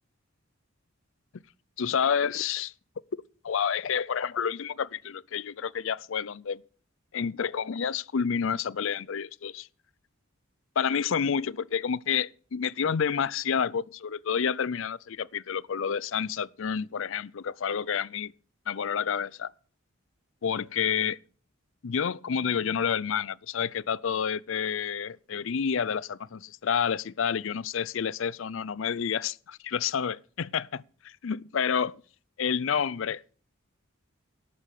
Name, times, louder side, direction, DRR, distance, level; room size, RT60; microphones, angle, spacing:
voice 1, 1.8-2.7 3.4-6.6 7.1-9.7 10.8-18.3 18.7-19.5 20.4-21.2 21.8-32.0 32.4-33.2, left 7 dB, 65° left, 0.5 m, -29 dB
12.0 x 8.0 x 6.7 m
head